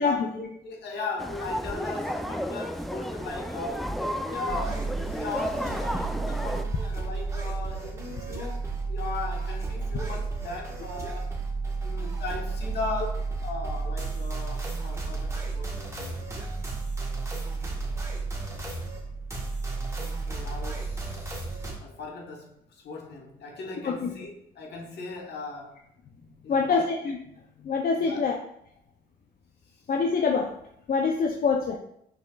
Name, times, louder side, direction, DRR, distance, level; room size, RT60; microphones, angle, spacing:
voice 1, 0.0-4.9 5.1-11.4 11.8-16.3 20.3-21.5 21.8-25.8 26.4-26.9 28.0-28.2, left 3 dB, 70° left, 0 dB, 1.2 m, -38 dB
sound 1, 1.2-6.6, equal, ahead, 0.4 m, -32 dB
sound 2, 4.5-21.7, right 3 dB, 15° right, 1.3 m, -32 dB
voice 2, 26.5-27.2 27.6-28.4 29.9-30.5 30.9-31.8, left 5 dB, 55° left, 2 dB, 0.6 m, -25 dB
5.7 x 3.9 x 2.3 m, 0.72 s
supercardioid pair, 65°, 18 cm